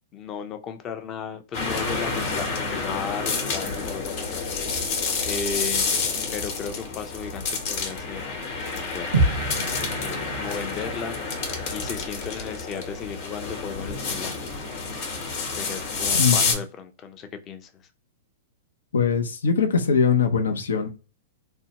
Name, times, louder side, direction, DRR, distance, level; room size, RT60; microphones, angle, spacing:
voice 1, 0.1-4.5 5.2-6.0 6.3-8.4 8.7-9.3 9.6-11.2 11.7-14.4 15.5-17.7, left 6 dB, 30° left, 0.5 m, -35 dB
sound 1, 1.5-16.5, left 4 dB, 55° left, 1.0 m, -29 dB
sound 2, 9.1-13.5, right 2 dB, 85° right, 0.7 m, -29 dB
voice 2, 16.1-16.5 18.9-20.9, left 6 dB, 90° left, 0.6 m, -22 dB
2.6 x 2.2 x 2.8 m
hypercardioid pair, 130°, 0 cm